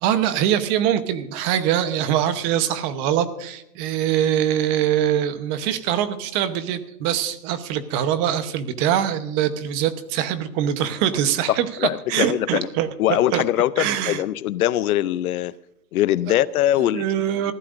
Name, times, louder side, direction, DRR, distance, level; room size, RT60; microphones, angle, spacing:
voice 1, 0.0-12.9 13.3-13.4 13.8-14.2 16.8-17.5, right 10 dB, 30° right, 1.0 m, -23 dB
voice 2, 11.5-12.7 13.0-15.6 15.9-17.0, left 13 dB, 65° left, 0.7 m, -22 dB
20.5 x 15.0 x 2.6 m
hypercardioid pair, 155°, 48 cm